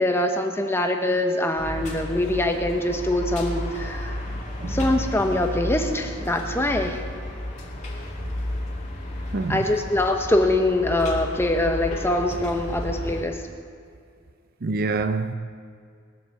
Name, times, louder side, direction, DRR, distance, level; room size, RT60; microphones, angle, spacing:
voice 1, 0.0-4.1 4.7-7.0 9.5-13.4, left 1 dB, 10° left, 1.0 m, -23 dB
sound 1, 1.6-13.2, left 1 dB, 35° left, 2.3 m, -32 dB
voice 2, 9.3-9.7 14.6-15.3, right 3 dB, 45° right, 0.5 m, -26 dB
19.5 x 8.1 x 6.9 m
head